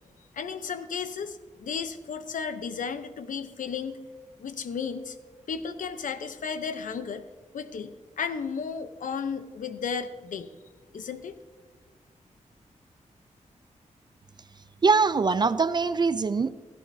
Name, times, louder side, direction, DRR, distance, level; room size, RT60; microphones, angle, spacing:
voice 1, 0.3-4.0 4.4-5.2 5.5-7.2 7.5-10.5 10.9-11.3, left 6 dB, 80° left, 10 dB, 0.7 m, -34 dB
voice 2, 14.8-16.5, right 4 dB, 35° right, 14 dB, 0.3 m, -22 dB
15.5 x 14.0 x 2.7 m, 1.4 s
wide cardioid pair, 130°, 13 cm